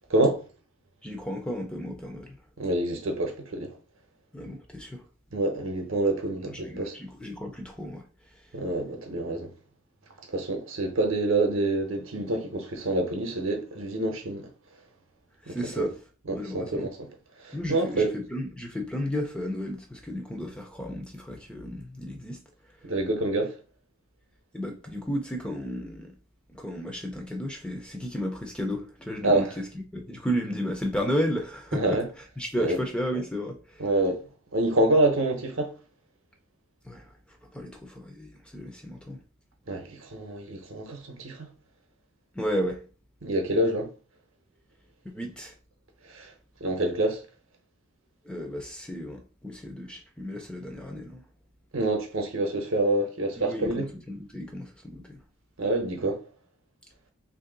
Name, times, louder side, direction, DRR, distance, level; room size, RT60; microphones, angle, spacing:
voice 1, 0.1-0.4 2.6-3.7 5.3-6.9 8.5-9.5 10.3-14.5 15.5-15.9 16.3-17.0 17.4-18.1 22.8-23.5 29.2-29.5 31.7-32.1 32.6-32.8 33.8-34.2 34.5-35.7 39.7-41.5 43.2-43.9 46.1-46.3 46.6-47.2 51.7-53.9 55.6-56.2, right 2 dB, 60° right, 0.8 m, -27 dB
voice 2, 1.0-2.4 4.3-5.0 6.5-8.0 15.4-15.9 16.3-16.9 17.5-22.4 24.5-26.1 26.5-32.0 32.4-33.8 36.8-37.1 37.5-39.2 42.3-42.8 45.0-45.5 48.2-51.2 53.4-55.2, equal, 5° left, 0.5 m, -33 dB
3.1 x 2.6 x 3.8 m
head